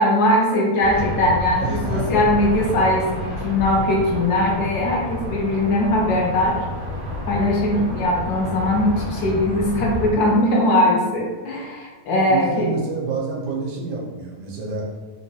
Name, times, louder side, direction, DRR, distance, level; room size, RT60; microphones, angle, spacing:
voice 1, 0.0-6.6 7.3-12.8, left 1 dB, 75° left, -1 dB, 1.1 m, -20 dB
sound 1, 0.8-10.1, left 1 dB, 45° right, 0.7 m, -29 dB
voice 2, 1.6-2.1 12.3-14.9, right 4 dB, 90° right, -2 dB, 1.3 m, -28 dB
3.3 x 2.8 x 2.2 m, 1.4 s
omnidirectional pair, 1.8 m